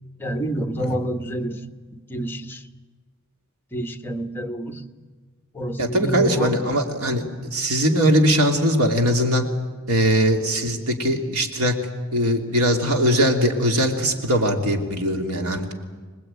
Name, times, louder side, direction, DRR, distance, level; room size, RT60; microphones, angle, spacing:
voice 1, 0.2-2.7 3.7-4.9 5.5-6.7, right 1 dB, 10° left, 5 dB, 1.2 m, -28 dB
voice 2, 5.8-9.4 9.9-11.7 12.1-15.7, equal, 90° right, 3 dB, 3.0 m, -21 dB
25.5 x 20.0 x 9.0 m, 1.4 s
head